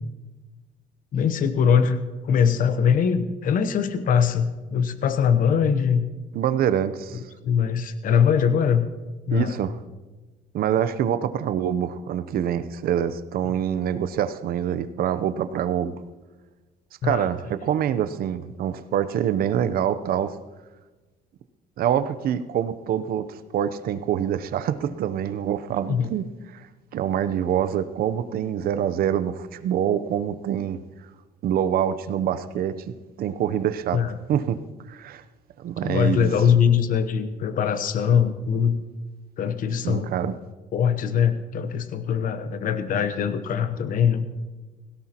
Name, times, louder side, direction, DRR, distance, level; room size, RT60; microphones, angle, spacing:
voice 1, 1.1-6.1 7.4-8.9 9.3-9.6 17.0-17.3 25.9-26.1 33.9-34.2 35.8-38.8 39.4-40.1 40.7-44.3, left 7 dB, 55° left, 10 dB, 0.9 m, -22 dB
voice 2, 6.3-7.2 9.3-9.7 10.5-16.0 17.0-20.3 21.8-26.3 26.5-26.7 26.9-30.8 31.4-34.0 34.3-34.6 34.9-35.2 35.6-36.3 39.8-40.3, right 9 dB, 60° right, 13 dB, 0.7 m, -25 dB
17.0 x 17.0 x 2.9 m, 1.2 s
cardioid pair, 110°, 17 cm